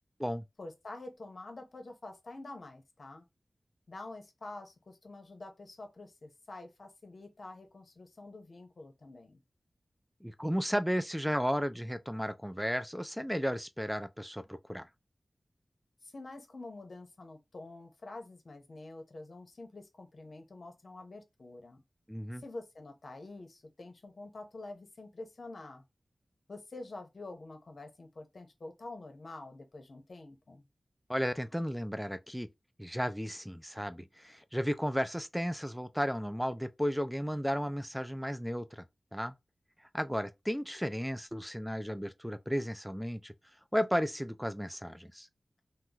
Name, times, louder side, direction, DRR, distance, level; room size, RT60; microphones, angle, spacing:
voice 1, 0.6-3.2 3.9-9.4 16.0-21.8 22.4-25.8 26.5-30.7, left 2 dB, 65° left, 0.9 m, -47 dB
voice 2, 10.2-14.9 22.1-22.4 31.1-32.5 32.8-38.8 39.1-39.3 39.9-43.3 43.7-45.3, equal, ahead, 0.4 m, -34 dB
3.0 x 2.1 x 3.7 m
wide cardioid pair, 65°, 0 cm